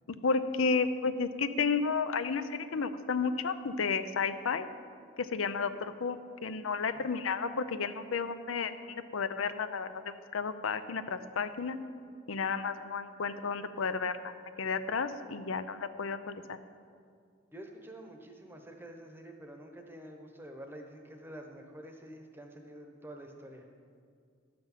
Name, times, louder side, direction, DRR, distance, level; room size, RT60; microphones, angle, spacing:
voice 1, 0.2-4.7 5.2-11.8 12.3-14.2 14.6-16.6, left 5 dB, 85° left, 11 dB, 0.6 m, -32 dB
voice 2, 17.5-23.6, right 1 dB, 10° right, 4 dB, 0.9 m, -48 dB
11.5 x 6.0 x 7.3 m, 2.2 s
head